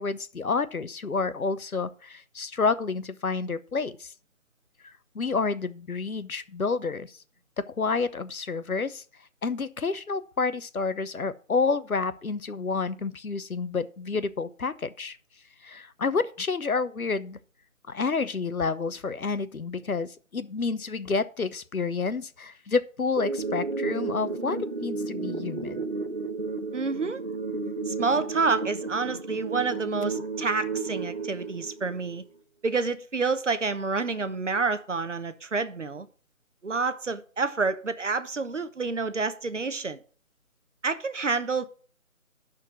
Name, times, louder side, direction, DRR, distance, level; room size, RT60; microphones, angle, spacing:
voice 1, 0.0-4.1 4.8-7.2 7.6-9.0 9.4-15.2 15.6-17.4 17.9-25.8, left 4 dB, 90° left, 0.9 m, -29 dB
sound 1, 23.2-32.2, right 3 dB, 40° right, 1.1 m, -32 dB
voice 2, 26.7-27.2 27.9-32.2 32.6-36.1 36.6-40.0 40.8-41.6, right 4 dB, 60° right, 1.0 m, -28 dB
11.5 x 4.4 x 6.0 m
figure-of-eight pair, 165°, 42 cm